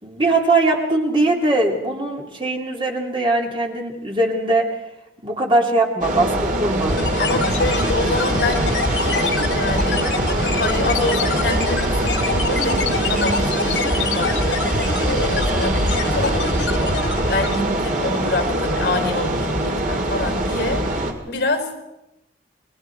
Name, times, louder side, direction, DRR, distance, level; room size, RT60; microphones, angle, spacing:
voice 1, 0.0-4.7 5.2-7.0, right 2 dB, 30° right, 1 dB, 2.7 m, -20 dB
sound 1, 6.0-21.1, right 1 dB, 50° right, 2.6 m, -23 dB
sound 2, 6.8-17.7, left 2 dB, 80° left, 2.7 m, -24 dB
voice 2, 7.2-8.7 9.0-10.0 10.3-21.7, left 2 dB, 65° left, 4 dB, 5.3 m, -27 dB
29.5 x 21.5 x 4.6 m, 0.90 s
head